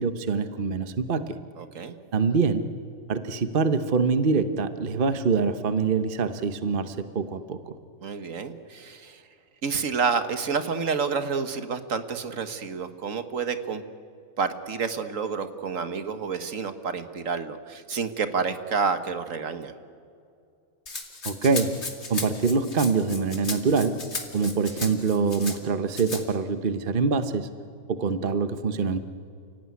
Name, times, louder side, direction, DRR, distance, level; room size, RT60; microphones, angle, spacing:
voice 1, 0.0-1.4 2.1-2.6 3.1-7.7 21.2-21.7 22.1-23.9 24.3-27.5 27.9-29.0, right 4 dB, 45° right, 10 dB, 1.1 m, -25 dB
voice 2, 1.6-2.0 8.0-9.2 9.6-13.8 14.4-19.7, right 5 dB, 70° right, 9 dB, 1.7 m, -29 dB
Rattle (instrument), 20.9-25.6 25.9-26.2, left 3 dB, 55° left, 2.8 m, -35 dB
30.0 x 17.5 x 9.6 m, 2.5 s
omnidirectional pair, 1.4 m